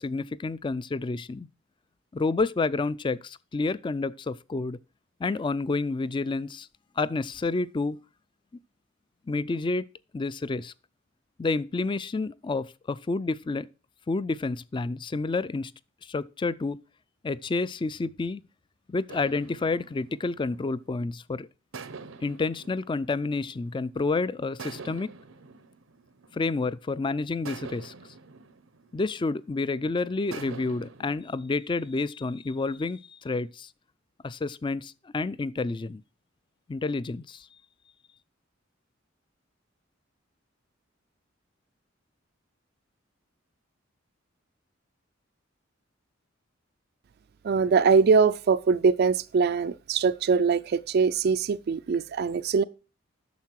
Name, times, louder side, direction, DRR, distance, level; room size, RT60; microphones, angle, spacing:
voice 1, 0.0-1.5 2.1-4.8 5.2-6.7 7.0-8.0 9.3-9.8 10.1-10.7 11.4-13.7 14.1-15.7 16.0-16.8 17.2-18.4 18.9-21.5 22.2-25.1 26.3-27.9 28.9-33.7 34.2-36.0 36.7-37.5, left 3 dB, 25° left, 0.3 m, -29 dB
sound 1, 19.1-21.1 21.7-24.0 24.6-26.9 27.5-29.6 30.3-31.2, right 4 dB, 85° right, 0.8 m, -46 dB
voice 2, 47.4-52.6, right 5 dB, 50° right, 0.3 m, -22 dB
9.4 x 6.6 x 4.5 m
head